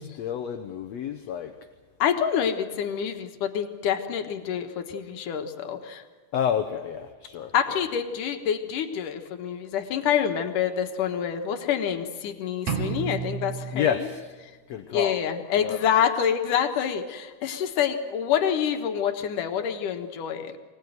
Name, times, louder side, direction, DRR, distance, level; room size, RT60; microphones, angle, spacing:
voice 1, 0.0-1.5 6.3-7.5 13.7-14.3 14.7-15.2 15.6-15.8, left 8 dB, 65° left, 1.9 m, -29 dB
voice 2, 2.0-6.0 7.5-14.0 14.9-20.6, left 8 dB, 85° left, 2.9 m, -27 dB
sound 1, 12.7-14.6, right 6 dB, 60° right, 3.5 m, -32 dB
25.0 x 18.5 x 9.3 m
omnidirectional pair, 3.7 m